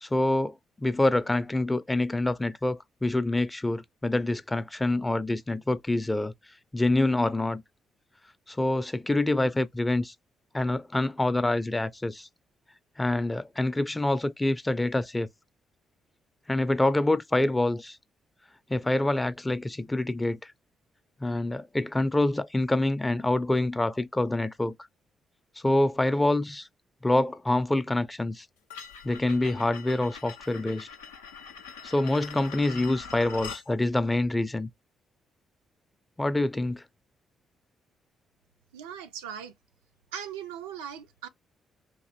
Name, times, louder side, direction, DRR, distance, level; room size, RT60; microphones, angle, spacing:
voice 1, 0.0-6.3 6.7-7.6 8.5-10.1 10.5-12.3 13.0-15.3 16.5-18.0 18.7-20.5 21.2-24.7 25.6-26.7 27.0-28.5 29.0-30.9 31.8-34.7 36.2-36.8, left 2 dB, 15° left, 0.4 m, -26 dB
sound 1, 28.7-33.7, left 6 dB, 85° left, 0.4 m, -43 dB
voice 2, 38.7-39.5 40.1-41.3, right 9 dB, 80° right, 0.3 m, -39 dB
2.9 x 2.6 x 2.8 m
figure-of-eight pair, 40°, 0 cm